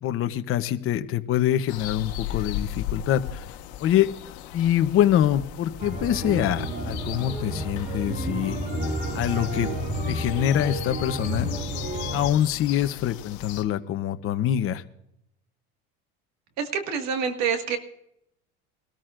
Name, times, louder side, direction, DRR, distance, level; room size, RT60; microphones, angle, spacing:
voice 1, 0.0-3.5 3.8-4.1 4.5-8.6 9.1-9.7 10.1-11.5 12.1-14.8, left 11 dB, 45° left, 8 dB, 0.9 m, -24 dB
sound 1, 1.7-13.6, left 11 dB, 70° left, 1.5 m, -38 dB
sound 2, 5.8-12.3, equal, 30° right, 5.9 m, -31 dB
voice 2, 16.6-17.8, right 6 dB, 60° right, 6 dB, 1.9 m, -26 dB
21.5 x 13.5 x 2.5 m, 0.77 s
supercardioid pair, 115°, 31 cm